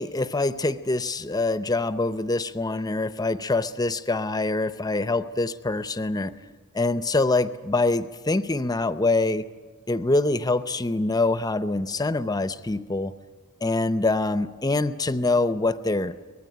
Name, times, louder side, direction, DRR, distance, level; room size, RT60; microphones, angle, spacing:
voice 1, 0.0-6.3 6.7-9.4 9.9-13.1 13.6-16.1, left 2 dB, 15° left, 13 dB, 0.6 m, -25 dB
23.5 x 20.0 x 10.0 m, 1.5 s
head